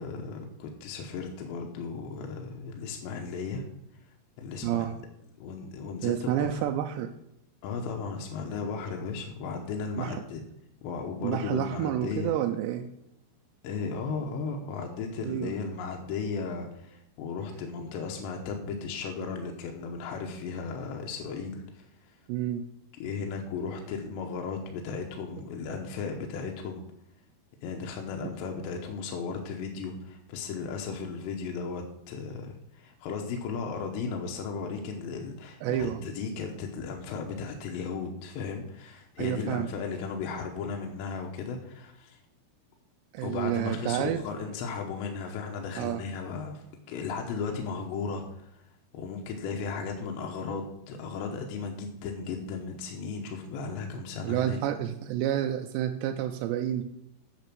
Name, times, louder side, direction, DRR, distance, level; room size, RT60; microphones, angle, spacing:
voice 1, 0.0-3.7 4.4-5.0 5.4-6.7 7.6-10.4 10.8-12.3 13.6-22.2 23.0-26.8 27.6-42.2 43.2-48.7 48.9-54.6, left 5 dB, 80° left, 2 dB, 3.1 m, -35 dB
voice 2, 4.6-4.9 6.0-7.1 10.0-10.2 11.2-12.9 15.2-15.5 22.3-22.6 35.6-36.0 39.2-39.7 43.1-44.2 45.8-46.0 54.2-56.8, right 11 dB, 80° right, 4 dB, 2.7 m, -29 dB
8.6 x 6.8 x 6.0 m, 0.80 s
omnidirectional pair, 5.1 m